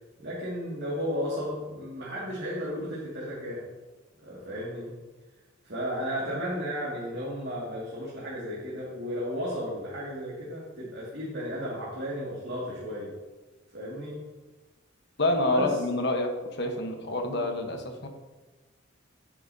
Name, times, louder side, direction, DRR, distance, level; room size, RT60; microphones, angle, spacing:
voice 1, 0.2-3.7 4.2-4.9 5.6-13.1 13.7-14.2 15.5-15.8, equal, 55° right, -7 dB, 2.2 m, -34 dB
voice 2, 15.2-16.3 16.6-18.1, left 2 dB, 55° left, 4 dB, 1.1 m, -27 dB
9.5 x 9.0 x 2.8 m, 1.2 s
head